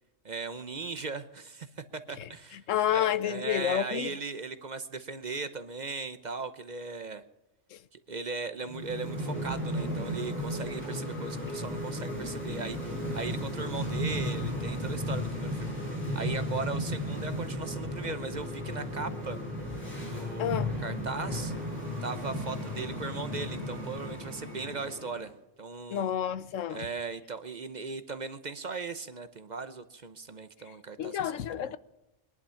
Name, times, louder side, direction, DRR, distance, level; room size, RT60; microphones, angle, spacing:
voice 1, 0.2-2.6 2.9-7.2 7.9-15.8 16.1-19.4 20.1-21.5 22.0-25.3 25.6-26.1 26.7-31.2 31.6-31.7, right 4 dB, 40° right, 0.8 m, -38 dB
voice 2, 2.2-4.2 7.7-7.8 20.4-20.7 25.9-26.9 30.7-31.8, left 10 dB, 90° left, 1.1 m, -30 dB
sound 1, 8.6-25.3, equal, 10° left, 7.6 m, -34 dB
22.0 x 11.0 x 5.7 m
omnidirectional pair, 1.3 m